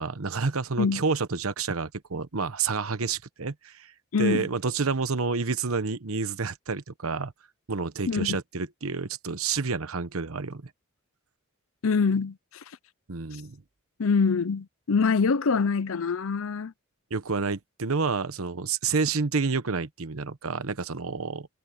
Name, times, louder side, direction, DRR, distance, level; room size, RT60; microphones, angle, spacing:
voice 1, 0.0-3.9 4.2-7.3 7.7-10.6 13.1-13.6 17.1-21.5, right 4 dB, 85° right, 1.0 m, -29 dB
voice 2, 4.1-4.5 8.1-8.4 11.8-12.8 13.3-13.4 14.0-16.7, left 5 dB, 75° left, 0.6 m, -25 dB
head